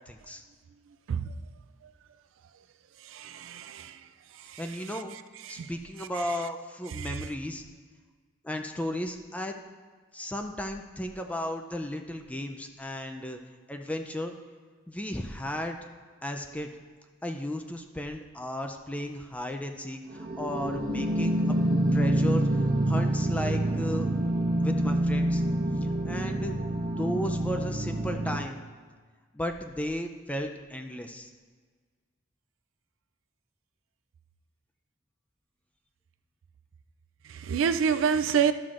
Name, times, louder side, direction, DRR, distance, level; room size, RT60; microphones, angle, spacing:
voice 1, 0.1-0.4 4.6-5.2 5.5-7.6 8.4-9.6 10.1-13.4 13.7-14.3 14.9-15.8 16.2-16.7 17.2-21.6 21.9-22.4 22.9-24.1 24.6-25.4 26.0-26.5 27.0-28.6 29.3-31.3, left 1 dB, 5° left, 0.4 m, -34 dB
voice 2, 3.1-4.0 4.5-4.6 5.5-5.7 7.0-7.1 37.3-38.5, right 7 dB, 90° right, 0.4 m, -27 dB
sound 1, 20.1-28.4, right 1 dB, 55° right, 1.0 m, -27 dB
12.0 x 7.5 x 2.5 m
head